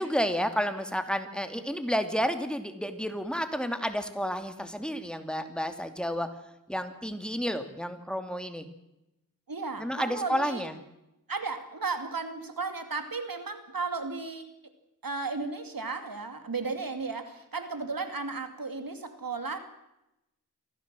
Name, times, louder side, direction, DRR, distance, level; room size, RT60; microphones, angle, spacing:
voice 1, 0.0-6.3 6.7-8.7 9.8-10.7, equal, 5° left, 8 dB, 2.7 m, -31 dB
voice 2, 9.5-10.6 11.3-14.4 15.0-19.6, right 4 dB, 85° right, 8 dB, 2.7 m, -34 dB
25.0 x 16.5 x 7.7 m, 0.89 s
wide cardioid pair, 45°, 34 cm